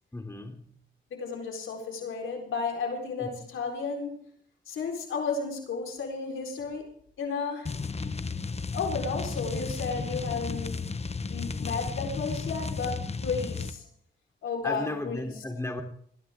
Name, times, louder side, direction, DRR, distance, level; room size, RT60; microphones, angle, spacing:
voice 1, 0.1-0.8 3.2-3.3 14.6-15.8, left 2 dB, 15° left, 3.0 m, -35 dB
voice 2, 1.1-4.3 4.7-6.9 7.2-7.7 8.7-10.8 11.3-13.8 14.4-15.3, left 4 dB, 85° left, 4.1 m, -33 dB
sound 1, 7.6-13.8, left 4 dB, 30° left, 1.0 m, -33 dB
21.0 x 14.5 x 3.6 m
cardioid pair, 70°, 20 cm